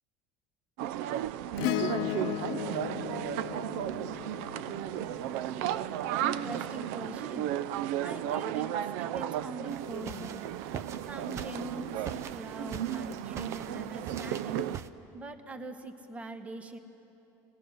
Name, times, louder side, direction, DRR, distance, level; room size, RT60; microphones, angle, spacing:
sound 1, 0.8-14.8, right 11 dB, 80° right, 0.5 m, -34 dB
Acoustic guitar / Strum, 1.6-6.2 8.1-8.2, left 17 dB, 65° left, 0.4 m, -36 dB
voice 1, 6.2-7.5 8.0-10.5 11.1-14.6 15.1-16.8, right 1 dB, 15° right, 7 dB, 1.2 m, -42 dB
sound 2, 9.7-14.9, right 8 dB, 40° right, 0.7 m, -44 dB
25.5 x 19.0 x 6.4 m, 3.0 s
cardioid pair, 135°, 8 cm